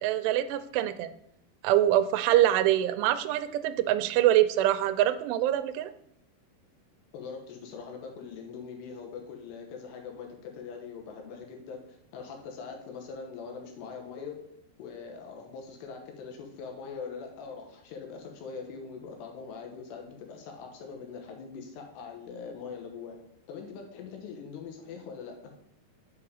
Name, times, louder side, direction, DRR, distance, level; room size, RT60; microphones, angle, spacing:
voice 1, 0.0-1.1 1.6-5.9, right 13 dB, 90° right, 11 dB, 2.7 m, -24 dB
voice 2, 7.1-14.4 14.8-23.2 23.5-25.4, left 5 dB, 90° left, 3 dB, 3.2 m, -42 dB
7.0 x 4.8 x 4.9 m, 0.76 s
omnidirectional pair, 4.7 m